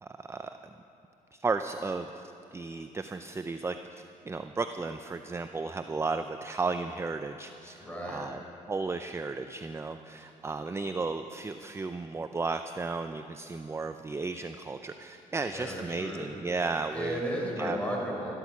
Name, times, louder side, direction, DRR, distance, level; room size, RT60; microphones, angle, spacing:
voice 1, 0.0-0.5 1.3-2.2 2.5-8.4 8.7-17.2 17.6-17.8, right 3 dB, 20° right, 8 dB, 0.4 m, -34 dB
voice 2, 7.8-8.3 15.5-16.3 16.9-18.3, equal, 10° left, -2 dB, 4.2 m, -34 dB
13.5 x 12.5 x 6.0 m, 2.8 s
cardioid pair, 90°, 14 cm